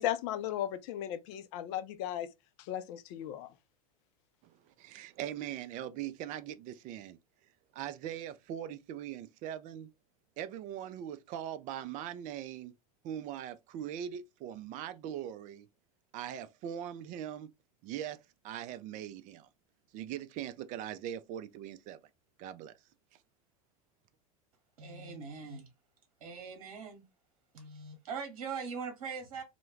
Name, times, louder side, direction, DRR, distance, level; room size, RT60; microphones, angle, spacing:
voice 1, 0.0-2.3 2.6-3.5, left 11 dB, 50° left, 0.5 m, -36 dB
voice 2, 4.4-7.2 7.7-9.9 10.4-12.7 13.0-15.7 16.1-17.5 17.8-18.2 18.4-19.5 19.9-22.0 22.4-22.7, right 10 dB, 40° right, 0.4 m, -41 dB
voice 3, 24.8-25.7 26.2-27.1 27.5-29.4, right 5 dB, 70° right, 1.0 m, -41 dB
2.2 x 2.1 x 3.1 m
hypercardioid pair, 85°, 19 cm